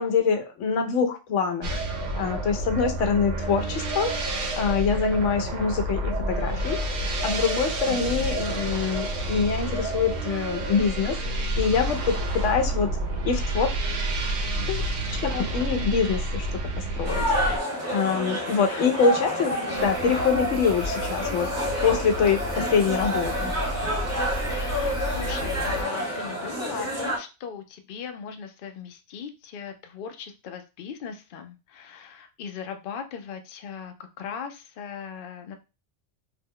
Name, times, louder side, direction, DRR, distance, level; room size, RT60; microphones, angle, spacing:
voice 1, 0.0-1.8 2.2-6.8 7.0-12.9 13.2-13.7 14.7-14.8 15.1-16.5 17.0-17.2 17.9-21.5 21.8-23.5, left 5 dB, 85° left, 5 dB, 0.9 m, -25 dB
sound 1, 1.6-17.6, right 1 dB, 90° right, 1.1 m, -29 dB
sound 2, 17.0-27.2, equal, 15° right, 0.8 m, -29 dB
sound 3, 19.7-25.8, equal, 65° right, 1.0 m, -33 dB
voice 2, 24.5-35.5, left 7 dB, 60° left, 6 dB, 0.6 m, -38 dB
2.8 x 2.1 x 3.6 m, 0.28 s
omnidirectional pair, 1.2 m